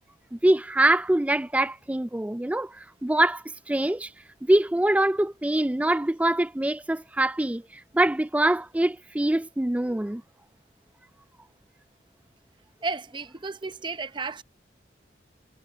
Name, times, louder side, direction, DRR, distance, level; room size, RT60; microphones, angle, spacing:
voice 1, 0.3-4.1 4.4-7.6 7.9-10.2, right 1 dB, 10° right, 0.3 m, -24 dB
voice 2, 12.8-14.4, right 3 dB, 25° right, 0.8 m, -33 dB
head